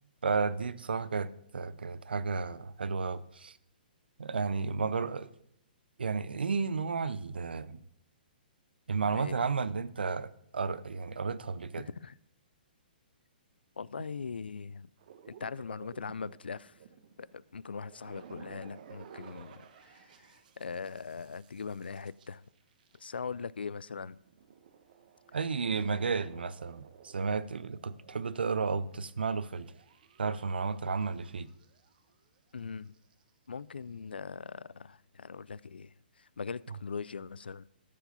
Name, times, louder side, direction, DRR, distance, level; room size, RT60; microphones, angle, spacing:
voice 1, 0.2-3.6 4.2-5.3 6.0-7.8 8.9-11.9 25.3-29.7 30.2-31.5, right 5 dB, 80° right, 0.6 m, -32 dB
voice 2, 11.8-12.2 13.8-14.9 15.3-16.8 17.2-22.4 23.0-24.2 32.5-32.9 33.5-37.7, left 5 dB, 85° left, 0.3 m, -41 dB
sound 1, 15.0-23.4 23.9-32.6 32.8-33.3, right 7 dB, 55° right, 1.1 m, -56 dB
13.5 x 4.7 x 5.3 m
figure-of-eight pair, 125°, 5 cm